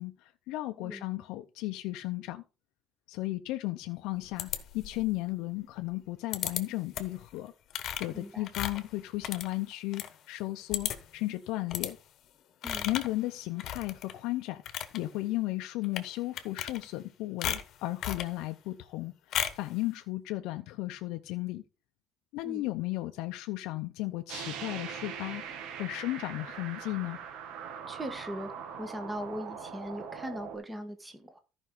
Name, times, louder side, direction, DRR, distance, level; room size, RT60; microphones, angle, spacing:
voice 1, 0.0-2.4 3.1-7.5 8.0-12.0 12.8-14.6 14.9-21.6 22.3-27.2, left 18 dB, 80° left, 0.6 m, -35 dB
sound 1, 4.4-5.1 6.3-6.6 6.9-7.2 7.7-10.1 10.4-10.5 10.7-11.2 11.7-11.9 12.6-13.2 13.6-14.1 14.5-15.0 15.8-16.1 16.4-17.1 17.4-18.3 19.3-19.7, left 10 dB, 50° left, 1.1 m, -35 dB
voice 2, 8.1-8.5 12.6-12.9 22.4-22.6 27.9-28.5 28.8-31.4, equal, 10° right, 1.4 m, -39 dB
sound 2, 24.3-30.6, right 7 dB, 80° right, 2.1 m, -41 dB
14.0 x 5.4 x 3.8 m
cardioid pair, 160°, 0 cm